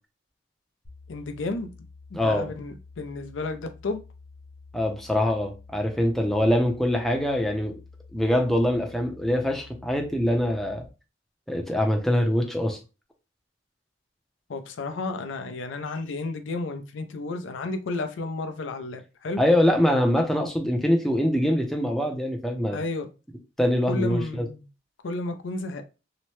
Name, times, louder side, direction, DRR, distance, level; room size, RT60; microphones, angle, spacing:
sound 1, 0.8-10.9, left 4 dB, 40° left, 0.7 m, -49 dB
voice 1, 1.1-1.7 2.1-4.0 14.5-19.4 22.7-23.1 23.9-24.7 25.0-25.8, left 3 dB, 85° left, 0.5 m, -32 dB
voice 2, 2.1-2.5 4.7-7.8 8.1-10.9 11.5-12.8 19.4-22.8 23.6-24.5, left 1 dB, ahead, 0.5 m, -24 dB
2.8 x 2.1 x 3.0 m
head